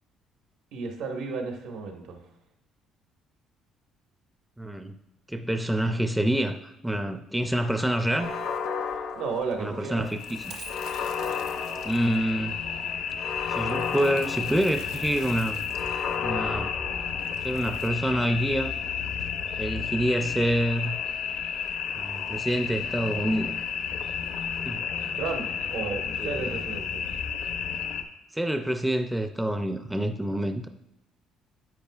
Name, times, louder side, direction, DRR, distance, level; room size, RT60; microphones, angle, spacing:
voice 1, 0.7-2.2 8.9-10.0 24.8-24.9 25.1-27.0, right 4 dB, 85° right, 2 dB, 1.5 m, -33 dB
voice 2, 4.6-5.0 5.3-8.3 9.6-10.4 11.8-12.6 13.5-15.6 16.2-16.7 17.4-18.7 19.6-21.0 22.0-23.6 24.6-25.2 25.8-25.9 26.2-26.6 28.3-30.7, right 1 dB, 5° right, 7 dB, 0.4 m, -27 dB
Coin (dropping), 8.0-24.6, right 5 dB, 65° right, 1.1 m, -50 dB
sound 1, 8.1-10.0 10.6-12.5 13.2-15.0 15.7-17.6, left 6 dB, 65° left, 0.6 m, -34 dB
sound 2, 10.0-28.0, left 7 dB, 85° left, 1.0 m, -32 dB
10.5 x 8.4 x 2.4 m, 0.94 s
cardioid pair, 160°, 0 cm